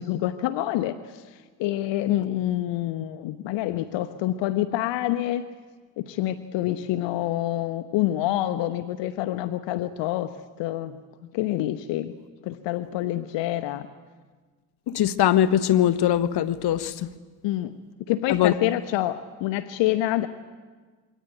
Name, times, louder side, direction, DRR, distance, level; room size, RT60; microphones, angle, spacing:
voice 1, 0.0-5.4 6.0-11.0 11.3-12.2 12.4-13.9 17.4-17.7 18.1-20.3, left 14 dB, 80° left, 1.2 m, -27 dB
voice 2, 14.9-17.1 18.3-18.5, left 11 dB, 60° left, 1.4 m, -21 dB
27.5 x 23.5 x 9.3 m
supercardioid pair, 75°, 44 cm